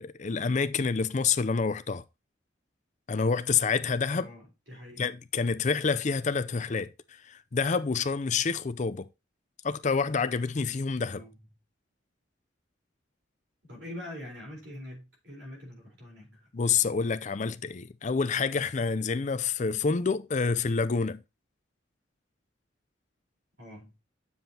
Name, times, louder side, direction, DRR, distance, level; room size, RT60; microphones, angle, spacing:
voice 1, 0.0-2.0 3.1-4.3 5.0-6.9 7.2-9.1 9.6-11.2 16.5-21.2, left 5 dB, 40° left, 0.5 m, -28 dB
voice 2, 4.1-5.1 11.1-11.5 13.6-16.5 23.6-24.0, left 1 dB, 65° right, 4.0 m, -44 dB
7.7 x 7.2 x 2.8 m
head